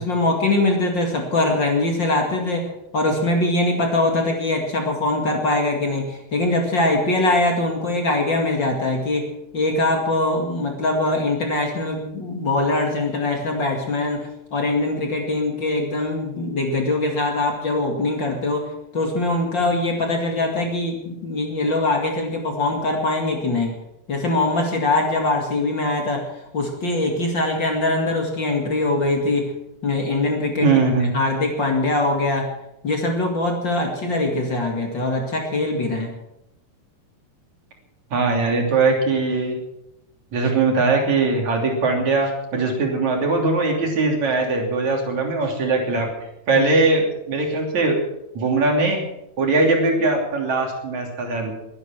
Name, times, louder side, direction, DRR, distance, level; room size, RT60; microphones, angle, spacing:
voice 1, 0.0-23.8 24.1-29.5 29.8-30.7 31.1-32.5 32.8-36.1 46.5-46.7, left 2 dB, 40° left, 2 dB, 2.7 m, -22 dB
voice 2, 30.6-31.1 38.1-39.5 40.3-46.1 46.5-48.0 48.3-49.0 49.4-51.5, right 3 dB, 65° right, 1 dB, 4.4 m, -20 dB
22.0 x 10.0 x 6.0 m, 0.86 s
omnidirectional pair, 3.4 m